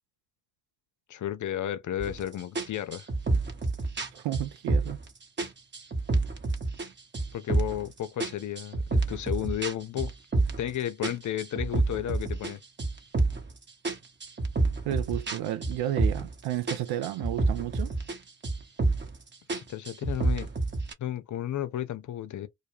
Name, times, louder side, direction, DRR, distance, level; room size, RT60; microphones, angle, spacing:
voice 1, 1.1-3.1 7.3-10.1 10.6-12.6 19.6-20.5 21.0-22.5, left 11 dB, 40° left, 0.6 m, -33 dB
sound 1, 2.0-2.2 2.6-5.1 5.4-6.9 7.1-7.9 8.2-10.7 11.0-13.5 13.8-16.4 16.7-18.2 18.4-19.2 19.5-20.9, right 3 dB, 25° right, 0.9 m, -28 dB
voice 2, 4.1-5.0 14.9-17.9, right 13 dB, 55° right, 0.6 m, -32 dB
2.2 x 2.2 x 3.0 m
figure-of-eight pair, 40°, 46 cm